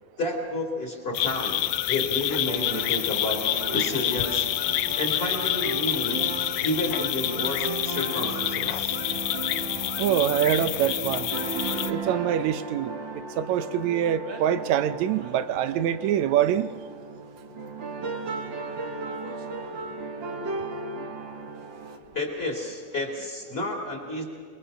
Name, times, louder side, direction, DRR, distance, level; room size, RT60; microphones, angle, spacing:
voice 1, 0.2-4.5 5.0-6.2 6.6-9.0 18.2-18.3 22.1-24.2, left 2 dB, 20° left, 2 dB, 3.3 m, -31 dB
sound 1, 1.1-11.9, left 14 dB, 80° left, 2.2 m, -28 dB
sound 2, 2.5-22.0, right 4 dB, 45° right, 2.0 m, -36 dB
voice 2, 10.0-11.3 11.9-16.7, right 10 dB, 75° right, 12 dB, 1.9 m, -25 dB
Wind instrument woodwind instrument, 11.3-15.4, left 2 dB, 35° left, 2.0 m, -48 dB
28.0 x 22.0 x 5.7 m, 2.1 s
omnidirectional pair, 3.6 m